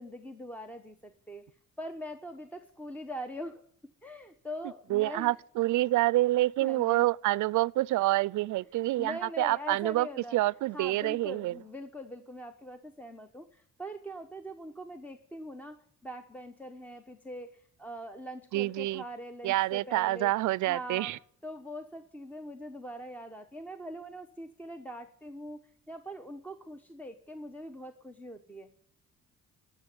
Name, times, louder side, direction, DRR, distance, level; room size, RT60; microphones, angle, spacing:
voice 1, 0.0-1.5 1.8-3.6 4.0-5.3 6.6-7.1 8.7-10.4 10.7-21.1 21.4-25.6 25.9-28.7, equal, 5° left, 1.0 m, -42 dB
voice 2, 4.9-10.1 10.3-11.5 18.5-19.0 19.4-21.2, right 17 dB, 75° right, 0.5 m, -27 dB
16.5 x 7.0 x 9.5 m
cardioid pair, 90°, 30 cm